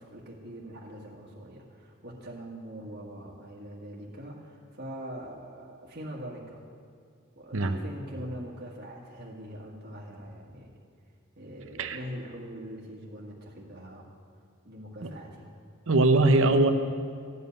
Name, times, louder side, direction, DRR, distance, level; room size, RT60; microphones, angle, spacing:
voice 1, 0.0-6.6 7.3-10.7 11.3-14.1 14.6-15.5, equal, 50° right, -4 dB, 1.7 m, -42 dB
voice 2, 15.9-16.7, right 2 dB, 65° right, 7 dB, 0.9 m, -21 dB
15.0 x 5.5 x 9.3 m, 2.3 s
head